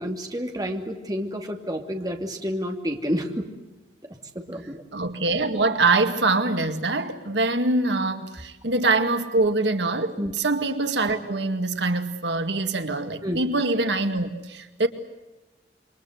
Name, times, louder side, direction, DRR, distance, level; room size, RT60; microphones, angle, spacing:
voice 1, 0.0-3.5 4.3-4.8 10.2-10.3 13.2-13.4, equal, 20° right, 3 dB, 2.7 m, -29 dB
voice 2, 4.9-14.9, right 3 dB, 90° right, 7 dB, 2.2 m, -24 dB
28.0 x 24.0 x 8.0 m, 1.1 s
head